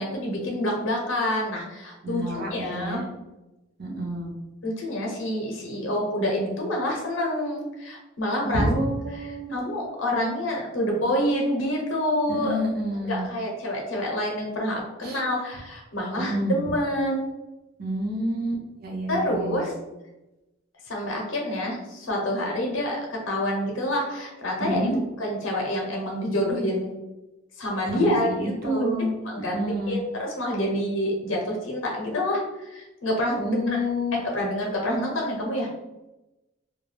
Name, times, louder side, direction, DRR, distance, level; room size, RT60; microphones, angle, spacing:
voice 1, 0.0-3.0 4.6-8.6 9.5-12.6 13.1-17.3 19.1-19.7 20.9-24.8 25.2-26.9 27.6-28.9 29.3-33.8 34.1-35.7, left 1 dB, 70° left, 0 dB, 0.6 m, -27 dB
voice 2, 2.0-3.0 3.8-4.3 8.4-9.5 12.3-13.3 15.0-15.2 16.2-16.6 17.8-19.6 24.6-25.0 27.9-29.1 29.5-30.0 33.4-34.2, equal, 45° right, -3 dB, 0.5 m, -28 dB
2.3 x 2.1 x 3.2 m, 0.99 s
head